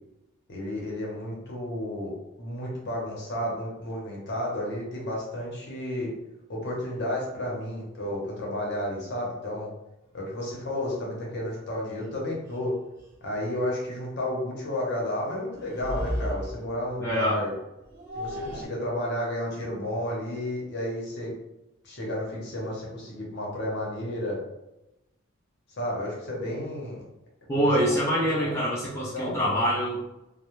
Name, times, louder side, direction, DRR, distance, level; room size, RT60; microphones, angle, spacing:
voice 1, 0.5-2.1 2.4-6.1 6.5-9.7 10.1-12.7 13.2-17.5 18.1-21.3 21.8-24.4 25.8-27.0 27.8-28.5 29.1-29.5, left 1 dB, 55° left, -3 dB, 0.8 m, -32 dB
sound 1, 10.6-10.8 12.0-12.1 12.5-12.6 13.0-13.2 15.5-16.8 17.7-18.7, equal, 40° right, 1.0 m, -34 dB
voice 2, 17.0-17.4 27.5-30.1, equal, 10° left, -7 dB, 0.4 m, -25 dB
2.2 x 2.0 x 3.0 m, 0.94 s
head